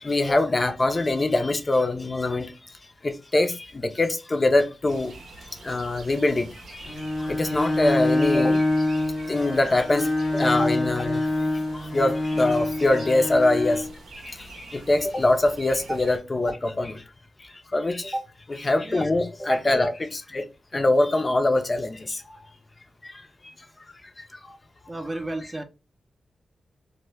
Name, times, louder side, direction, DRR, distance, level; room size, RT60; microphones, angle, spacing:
voice 1, 0.0-2.5 3.0-5.2 5.6-6.5 6.7-6.9 7.2-8.6 9.3-11.3 11.8-13.8 14.2-17.0 17.7-18.1 18.6-20.4 20.7-22.2 23.0-23.1, left 2 dB, 35° left, 0.4 m, -23 dB
sound 1, 4.9-16.2, right 2 dB, 75° right, 0.7 m, -45 dB
Bowed string instrument, 6.8-13.9, left 2 dB, 85° left, 0.9 m, -25 dB
voice 2, 24.9-25.6, right 1 dB, 30° right, 0.5 m, -31 dB
2.2 x 2.1 x 3.2 m
cardioid pair, 55°, 0 cm